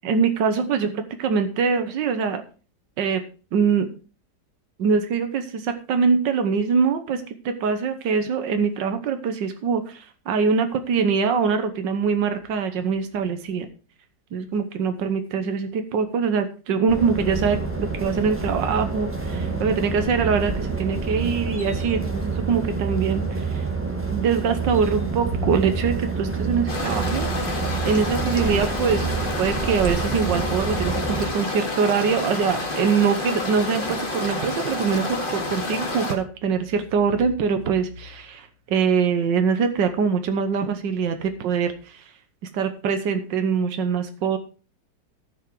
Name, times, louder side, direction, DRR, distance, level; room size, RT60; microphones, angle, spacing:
voice 1, 0.0-2.4 3.0-3.2 3.5-3.9 4.8-13.7 14.3-23.6 24.1-27.3 27.8-29.1 29.4-42.0 42.5-44.4, right 5 dB, 85° right, 8 dB, 1.7 m, -23 dB
sound 1, 16.9-31.3, right 4 dB, 5° right, 1.6 m, -28 dB
sound 2, 26.7-36.2, left 2 dB, 30° left, 2.1 m, -29 dB
14.0 x 6.2 x 4.7 m, 0.36 s
omnidirectional pair, 1.9 m